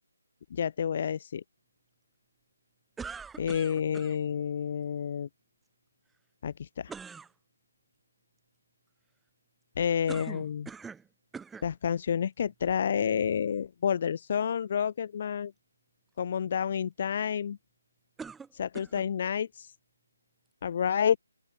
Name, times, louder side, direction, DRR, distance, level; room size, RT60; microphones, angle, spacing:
voice 1, 0.5-1.4 3.4-5.3 6.4-6.9 9.8-10.7 11.6-15.5 16.2-17.6 18.5-19.7 20.6-21.2, left 8 dB, 40° left, 2.8 m, -29 dB
sound 1, 3.0-4.2 6.9-7.3 10.1-11.1 11.3-11.7 12.5-12.6 18.2-19.1, right 5 dB, 5° right, 2.0 m, -43 dB
open air
figure-of-eight pair, 150°, 0 cm